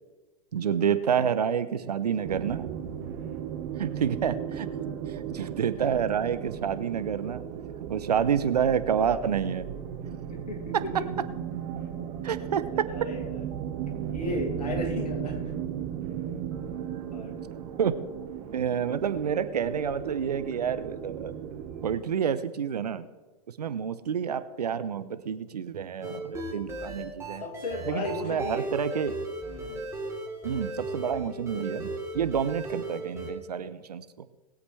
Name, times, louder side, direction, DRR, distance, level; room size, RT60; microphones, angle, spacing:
voice 1, 0.5-2.9 3.8-4.7 5.3-7.4 7.9-9.7 10.7-10.8 12.2-12.9 17.8-18.0 18.5-21.3 21.8-23.0 23.6-27.4 27.9-29.2 30.4-34.3, right 8 dB, 80° right, 13 dB, 0.8 m, -28 dB
sound 1, 2.2-21.9, right 9 dB, 50° right, 1.4 m, -36 dB
voice 2, 3.1-3.5 10.3-10.9 12.9-13.3 14.1-15.4 17.1-17.4 27.4-28.7 29.5-29.8, left 2 dB, 90° left, 0 dB, 3.0 m, -34 dB
sound 2, 26.0-33.3, right 2 dB, 15° right, 3.4 m, -36 dB
20.0 x 8.2 x 3.3 m, 1.2 s
hypercardioid pair, 95°, 20 cm